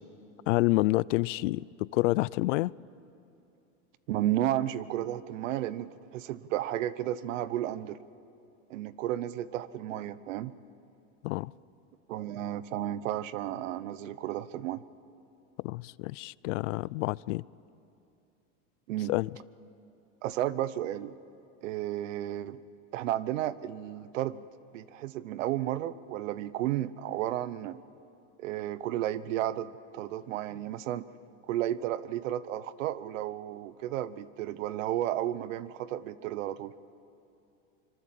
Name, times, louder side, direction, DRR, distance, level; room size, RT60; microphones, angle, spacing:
voice 1, 0.5-2.7 11.2-11.5 15.6-17.4 19.1-19.3, left 20 dB, 75° left, 23 dB, 0.5 m, -28 dB
voice 2, 4.1-8.0 8.7-10.5 12.1-14.8 18.9-19.1 20.2-21.2 21.6-22.6 22.9-24.4 24.7-27.8 28.4-31.1 31.5-36.7, right 13 dB, 80° right, 17 dB, 1.0 m, -33 dB
25.0 x 23.0 x 7.7 m, 2.7 s
supercardioid pair, 130°, 37 cm